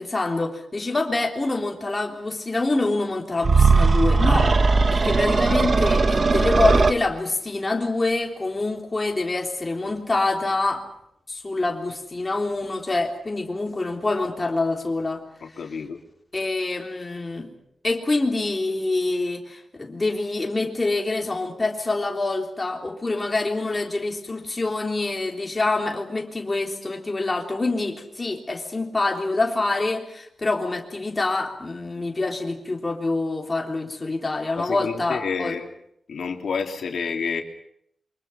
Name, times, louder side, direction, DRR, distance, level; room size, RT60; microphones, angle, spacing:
voice 1, 0.0-4.5 4.9-10.8 11.3-15.2 16.3-17.5 17.8-35.6, left 2 dB, 20° left, 1 dB, 3.5 m, -26 dB
sound 1, 3.4-6.9, right 4 dB, 35° right, 1.1 m, -18 dB
voice 2, 15.4-16.0 34.6-35.7 36.1-37.4, left 5 dB, 65° left, 3 dB, 3.2 m, -29 dB
28.5 x 25.0 x 5.9 m, 0.75 s
wide cardioid pair, 165°, 0 cm